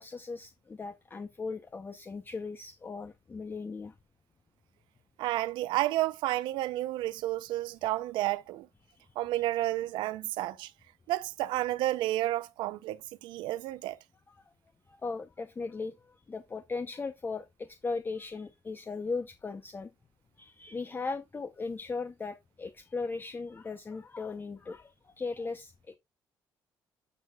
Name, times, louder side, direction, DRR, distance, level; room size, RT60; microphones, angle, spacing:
voice 1, 0.0-3.9 8.9-9.0 14.3-14.5 14.9-19.9 20.4-25.9, left 4 dB, 25° left, 0.7 m, -38 dB
voice 2, 5.2-8.7 9.2-10.7 11.1-14.0, right 16 dB, 85° right, 0.5 m, -31 dB
11.5 x 6.4 x 2.3 m
cardioid pair, 90°, 8 cm